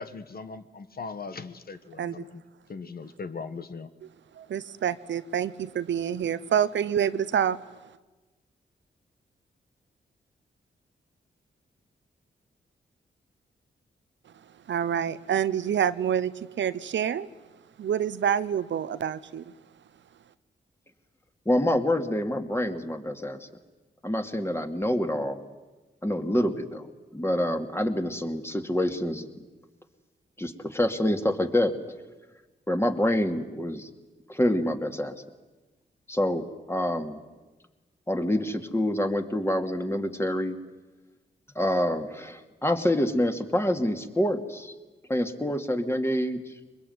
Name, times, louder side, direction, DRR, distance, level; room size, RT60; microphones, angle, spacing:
voice 1, 0.0-2.4 2.7-3.9, left 4 dB, 50° left, 11 dB, 1.4 m, -39 dB
voice 2, 4.4-7.6 14.7-17.3 17.8-19.5, right 9 dB, 75° right, 15 dB, 0.8 m, -27 dB
voice 3, 21.5-23.5 24.0-25.4 26.0-29.3 30.4-31.7 32.7-33.9 34.3-35.1 36.1-37.2 38.1-40.6 41.6-44.7 45.1-46.4, left 1 dB, 15° left, 6 dB, 2.5 m, -27 dB
23.0 x 21.0 x 9.5 m, 1.2 s
cardioid pair, 60°, 19 cm